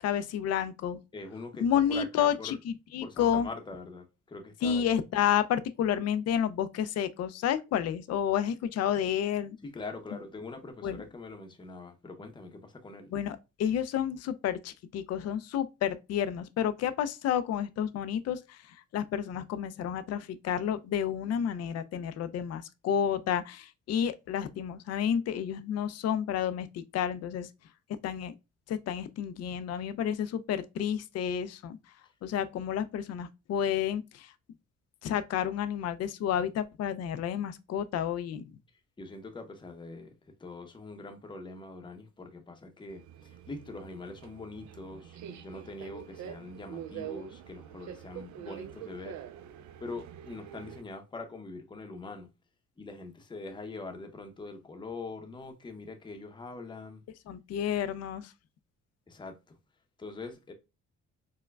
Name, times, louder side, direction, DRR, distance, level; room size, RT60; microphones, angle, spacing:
voice 1, 0.0-1.0 1.6-3.5 4.6-9.6 10.8-11.0 13.1-27.5 28.0-28.3 28.7-31.9 32.2-34.3 35.0-38.5 57.3-58.3, left 9 dB, 55° left, 0.4 m, -30 dB
voice 2, 1.1-2.6 3.0-4.9 9.7-13.1 39.0-40.1 40.4-49.2 49.8-52.3 52.8-57.0 59.1-59.6 60.0-60.5, left 3 dB, 15° left, 0.7 m, -43 dB
Subway metro underground, 42.9-50.8, right 9 dB, 70° right, 0.4 m, -45 dB
4.5 x 2.2 x 2.2 m
cardioid pair, 90°, 30 cm